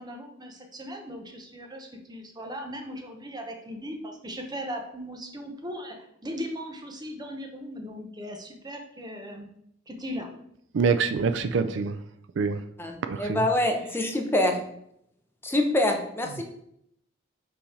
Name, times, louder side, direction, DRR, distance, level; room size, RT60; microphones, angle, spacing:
voice 1, 0.0-6.0 6.2-9.5 9.9-10.3, equal, 20° right, 3 dB, 1.0 m, -38 dB
voice 2, 10.7-12.0 12.4-12.6 13.1-13.4, right 5 dB, 65° right, 10 dB, 0.4 m, -25 dB
voice 3, 12.8-14.5 15.4-16.4, left 1 dB, 10° left, 3 dB, 0.8 m, -25 dB
5.6 x 4.1 x 4.9 m, 0.73 s
head